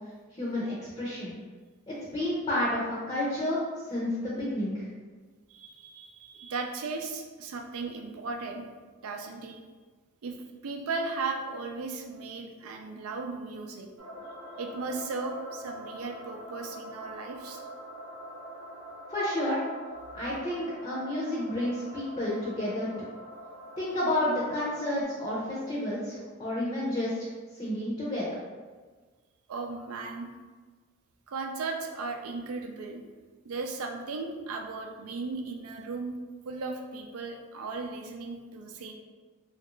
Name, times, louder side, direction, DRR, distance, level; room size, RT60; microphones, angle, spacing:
voice 1, 0.3-1.3 1.9-3.6 3.9-4.8 19.1-19.6 20.1-23.1 23.8-27.3 27.6-28.2, left 1 dB, 25° left, -7 dB, 0.6 m, -30 dB
voice 2, 5.5-8.6 9.0-9.6 10.2-10.3 10.6-13.9 14.6-17.6 20.2-20.3 29.5-30.3 31.3-33.0 33.4-36.2 36.4-38.9, right 3 dB, 90° right, 3 dB, 0.4 m, -36 dB
sound 1, 14.0-25.0, equal, 55° right, 0.8 m, -44 dB
3.2 x 2.4 x 3.0 m, 1.4 s
head